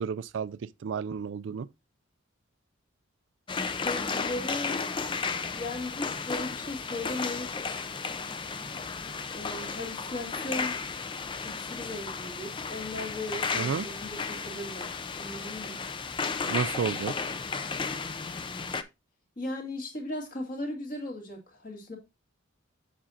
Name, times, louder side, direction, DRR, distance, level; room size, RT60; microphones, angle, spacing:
voice 1, 0.0-1.7 13.5-13.8 16.5-17.1, right 6 dB, 60° right, 0.3 m, -31 dB
sound 1, 3.5-18.8, left 5 dB, 25° left, 0.4 m, -34 dB
voice 2, 3.8-4.8 5.5-7.7 9.3-10.8 11.4-15.8 19.4-22.0, left 1 dB, 40° left, 2.0 m, -37 dB
7.2 x 6.2 x 2.7 m
head